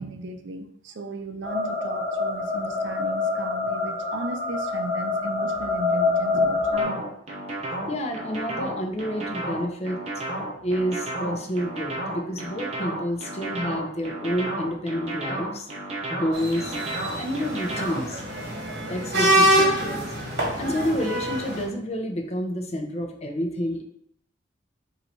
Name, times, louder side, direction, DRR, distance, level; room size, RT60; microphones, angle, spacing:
voice 1, 0.0-7.0 10.5-10.6 19.6-20.0, right 2 dB, 80° right, 6 dB, 0.5 m, -36 dB
sound 1, 1.4-6.8, left 3 dB, 20° left, 1.1 m, -26 dB
sound 2, 6.7-18.2, right 1 dB, 35° right, 1.1 m, -32 dB
voice 2, 7.9-10.0 10.6-15.7 16.1-16.7 17.2-18.2 18.9-20.1 20.6-23.8, equal, 35° left, 3 dB, 0.6 m, -29 dB
sound 3, 16.3-21.6, right 1 dB, 60° right, 1.4 m, -25 dB
4.0 x 2.7 x 4.4 m, 0.68 s
head